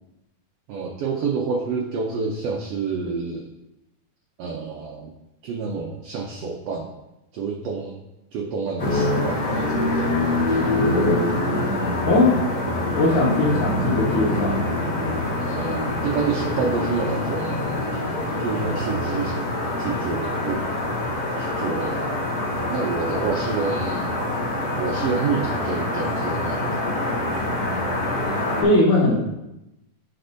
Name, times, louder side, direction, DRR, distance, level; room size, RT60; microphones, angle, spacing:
voice 1, 0.7-3.5 4.4-5.1 5.4-6.9 7.3-8.0 8.3-10.2 15.4-17.9 18.4-19.5 19.8-20.6 21.4-22.1 22.7-24.1 24.7-26.7, right 4 dB, 80° right, 1 dB, 1.4 m, -28 dB
sound 1, 8.8-28.6, left 1 dB, 40° left, 1.5 m, -25 dB
voice 2, 12.0-12.4 12.9-14.6 28.6-29.2, left 2 dB, 70° left, -7 dB, 2.6 m, -19 dB
11.0 x 4.3 x 2.6 m, 0.94 s
omnidirectional pair, 3.5 m